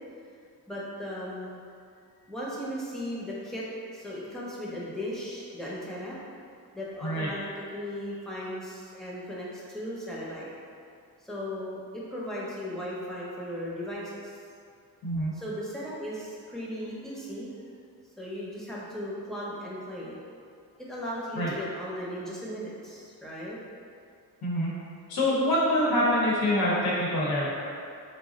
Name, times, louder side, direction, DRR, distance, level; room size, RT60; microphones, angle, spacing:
voice 1, 0.7-1.6 2.3-3.7 3.9-6.2 6.7-10.5 11.2-14.3 15.3-17.5 18.2-20.2 20.9-23.6, equal, ahead, -7 dB, 0.6 m, -37 dB
voice 2, 15.0-15.3 21.3-21.5 24.4-24.7 25.1-27.5, left 1 dB, 85° left, -5 dB, 0.8 m, -25 dB
3.6 x 2.0 x 3.6 m, 2.4 s
wide cardioid pair, 140°, 36 cm